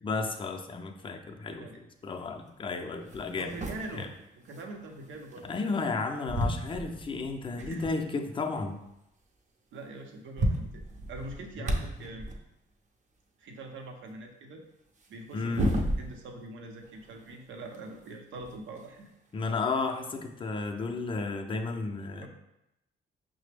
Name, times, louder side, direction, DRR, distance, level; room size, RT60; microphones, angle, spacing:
voice 1, 0.0-1.7 2.0-3.5 3.9-4.1 5.4-8.8 11.6-12.2 15.3-15.7 19.3-22.3, left 3 dB, 25° left, 5 dB, 0.4 m, -33 dB
voice 2, 1.5-1.8 3.3-4.1 4.4-5.5 7.6-8.0 9.7-10.8 11.1-12.3 13.4-14.6 15.1-19.1 22.2-22.3, right 2 dB, 75° right, 3 dB, 0.7 m, -43 dB
sound 1, 2.5-2.6 3.0-5.9 6.3-8.0 8.5-8.6 8.9-9.0 9.8-9.9 10.1-12.5 14.9-16.4 16.8-19.0 20.1-20.2 21.2-21.3, right 1 dB, 40° right, 0.6 m, -34 dB
5.6 x 2.0 x 3.3 m, 0.86 s
cardioid pair, 90°, 20 cm